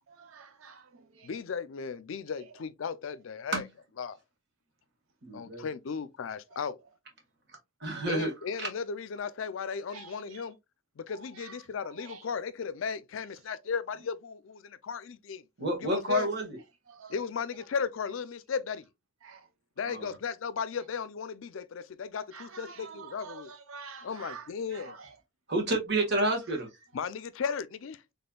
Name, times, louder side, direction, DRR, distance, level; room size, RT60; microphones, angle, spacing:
voice 1, 0.2-0.8 9.9-10.4 11.4-11.5 12.0-12.2 17.0-17.1 19.2-19.4 22.3-25.1, right 5 dB, 75° right, 0.6 m, -47 dB
voice 2, 1.2-3.6 4.0-4.2 5.3-6.8 8.1-10.6 11.1-15.4 15.8-16.3 17.1-18.8 19.8-23.5 24.0-25.0 26.9-28.0, left 6 dB, 70° left, 0.4 m, -35 dB
voice 3, 5.2-5.7 7.8-8.7 15.6-16.6 19.8-20.2 24.9-25.0 25.5-26.7, right 1 dB, 55° right, 1.5 m, -30 dB
4.2 x 3.4 x 2.2 m
head